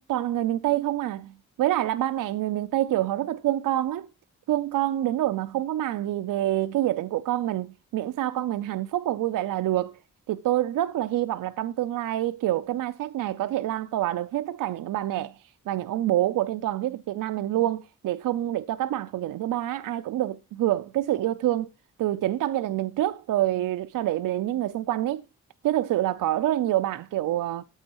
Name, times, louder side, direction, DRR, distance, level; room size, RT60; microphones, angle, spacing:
voice 1, 0.0-1.3 1.6-4.1 4.5-9.9 10.3-15.3 15.7-21.7 22.0-25.2 25.6-27.6, right 13 dB, 85° right, 0.5 m, -27 dB
11.5 x 8.8 x 3.0 m
cardioid pair, 55°, 32 cm